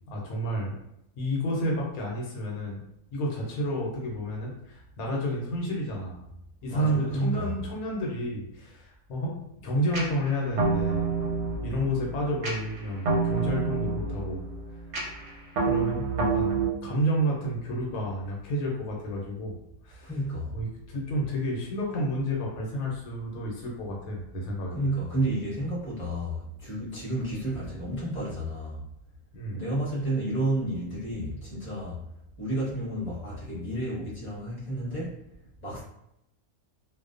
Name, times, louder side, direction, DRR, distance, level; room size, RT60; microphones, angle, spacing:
voice 1, 0.1-0.8 1.2-2.8 3.1-6.3 6.6-9.4 9.6-11.1 11.6-14.4 14.7-14.8 15.6-19.6 19.8-20.1 20.5-24.8 29.3-29.6, equal, 75° left, -1 dB, 1.0 m, -30 dB
voice 2, 6.7-7.5 20.0-20.6 24.7-28.8 29.5-32.0 32.4-35.1 35.6-35.8, right 1 dB, 10° left, -8 dB, 0.7 m, -31 dB
sound 1, 9.9-16.7, right 4 dB, 65° right, 0.9 m, -29 dB
2.5 x 2.1 x 2.4 m, 0.80 s
omnidirectional pair, 1.6 m